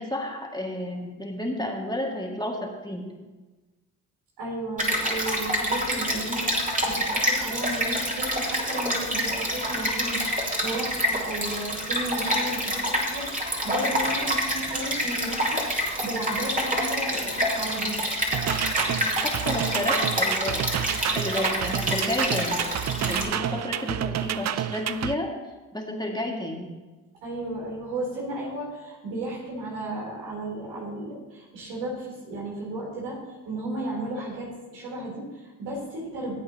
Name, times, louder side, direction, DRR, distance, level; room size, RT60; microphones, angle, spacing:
voice 1, 0.0-3.2 18.9-20.7 21.1-22.7 23.0-25.3 25.7-26.7, left 1 dB, 10° left, 0 dB, 2.2 m, -31 dB
voice 2, 4.4-18.0 23.4-23.5 27.2-33.2 33.5-36.3, right 1 dB, 85° right, -4 dB, 3.8 m, -34 dB
Stream, 4.8-23.2, equal, 20° right, 3.1 m, -27 dB
sound 1, 18.3-25.2, right 10 dB, 40° right, 0.5 m, -29 dB
17.0 x 8.4 x 3.0 m, 1.2 s
hypercardioid pair, 50°, 41 cm